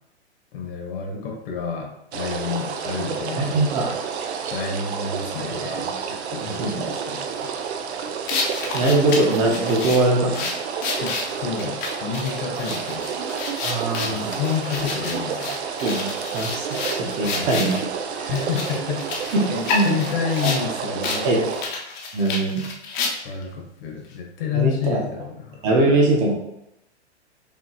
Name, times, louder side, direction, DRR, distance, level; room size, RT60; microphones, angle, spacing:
voice 1, 0.5-3.6 4.5-5.9 6.3-7.5 11.0-11.2 11.4-13.2 14.0-15.6 17.2-17.6 18.2-21.5 23.2-25.7, left 6 dB, 55° left, 1 dB, 1.2 m, -29 dB
sound 1, 2.1-21.6, right 6 dB, 70° right, 0.6 m, -30 dB
voice 2, 3.4-3.9 5.5-5.9 6.4-6.9 8.7-10.6 13.6-14.3 15.8-17.8 19.3-19.9 20.4-20.5 21.2-21.4 22.1-22.6 24.5-25.0 25.6-26.3, right 2 dB, 35° right, -1 dB, 1.0 m, -22 dB
sound 2, 8.3-17.8 18.3-20.6 21.0-21.2 21.5-23.4, left 4 dB, 30° left, 0.7 m, -30 dB
5.3 x 2.9 x 2.9 m, 0.82 s
hypercardioid pair, 140°, 34 cm